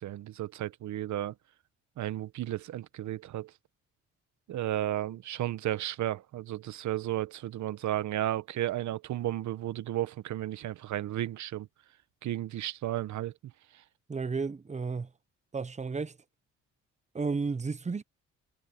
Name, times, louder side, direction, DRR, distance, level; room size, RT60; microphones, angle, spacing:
voice 1, 0.0-1.3 2.0-3.5 4.5-11.7 12.2-13.3 13.7-13.8, right 13 dB, 70° right, 1.1 m, -33 dB
voice 2, 14.1-15.1 15.5-16.2 17.1-18.0, right 4 dB, 25° right, 0.9 m, -32 dB
cardioid pair, 90°, 30 cm